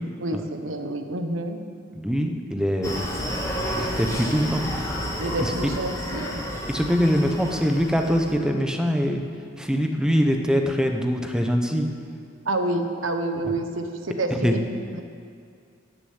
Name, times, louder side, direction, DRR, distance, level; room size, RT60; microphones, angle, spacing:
voice 1, 0.2-1.6 5.2-6.4 12.4-14.6 14.9-15.0, right 2 dB, 80° right, 6 dB, 1.2 m, -28 dB
voice 2, 1.9-3.1 3.7-4.6 5.4-5.5 6.7-9.2 9.6-11.9 14.4-14.6, equal, 5° right, 4 dB, 1.0 m, -23 dB
Screaming, 2.8-8.4, equal, 15° left, 1.7 m, -31 dB
14.0 x 7.0 x 9.7 m, 2.3 s
head